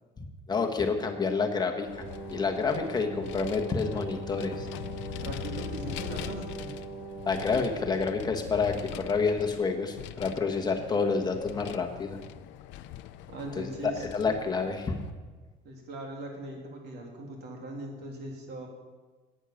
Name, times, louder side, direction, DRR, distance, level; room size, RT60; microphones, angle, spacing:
voice 1, 0.2-2.0 2.3-4.7 7.3-12.2 13.6-13.7 14.0-15.0, left 4 dB, 20° left, 4 dB, 1.3 m, -29 dB
Vehicle, 1.9-15.1, left 12 dB, 80° left, 0.6 m, -42 dB
Wind instrument woodwind instrument, 2.0-8.6, right 4 dB, 15° right, 1.3 m, -41 dB
voice 2, 5.2-6.7 13.3-14.1 15.6-18.7, right 2 dB, 60° right, 1 dB, 2.8 m, -40 dB
10.0 x 9.0 x 7.1 m, 1.3 s
cardioid pair, 145°, 19 cm